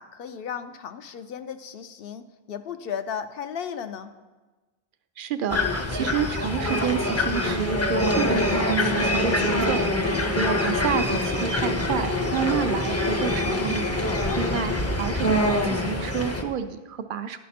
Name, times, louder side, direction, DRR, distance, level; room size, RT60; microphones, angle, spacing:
voice 1, 0.0-4.1 10.0-10.3 14.0-14.4, left 7 dB, 70° left, 9 dB, 0.8 m, -35 dB
voice 2, 5.2-17.4, right 7 dB, 60° right, 10 dB, 0.7 m, -30 dB
sound 1, 5.5-16.4, left 1 dB, 20° left, 0.5 m, -24 dB
11.0 x 5.8 x 4.2 m, 1.2 s
omnidirectional pair, 1.0 m